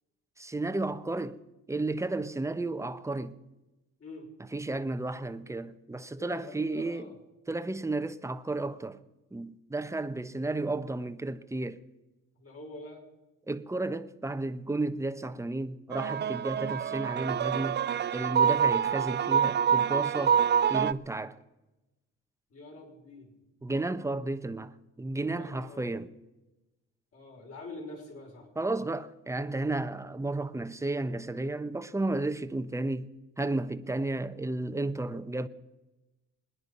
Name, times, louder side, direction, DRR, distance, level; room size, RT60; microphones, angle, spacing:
voice 1, 0.4-1.4 1.7-3.4 4.5-7.1 7.5-9.0 9.3-11.8 13.5-17.8 18.1-20.4 20.7-21.4 23.6-26.1 28.6-33.1 33.4-35.5, right 2 dB, 10° right, 0.9 m, -33 dB
voice 2, 6.1-7.2 12.4-13.0 22.5-23.3 25.3-26.0 27.1-28.5, left 2 dB, 50° left, 5.5 m, -45 dB
sound 1, 15.9-20.9, right 8 dB, 35° right, 0.5 m, -26 dB
25.0 x 10.0 x 5.5 m
cardioid pair, 95°, 31 cm